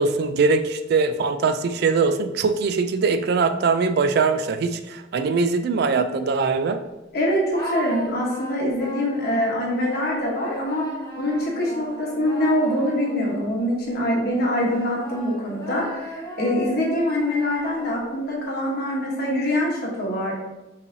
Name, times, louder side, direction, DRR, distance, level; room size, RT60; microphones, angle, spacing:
voice 1, 0.0-6.8, right 4 dB, 60° right, 10 dB, 0.3 m, -22 dB
voice 2, 7.1-10.9 11.2-20.3, left 1 dB, 55° left, -2 dB, 1.1 m, -24 dB
sound 1, 7.5-13.8 14.3-18.3, right 1 dB, 20° left, 1.1 m, -37 dB
5.5 x 3.1 x 2.7 m, 1.0 s
head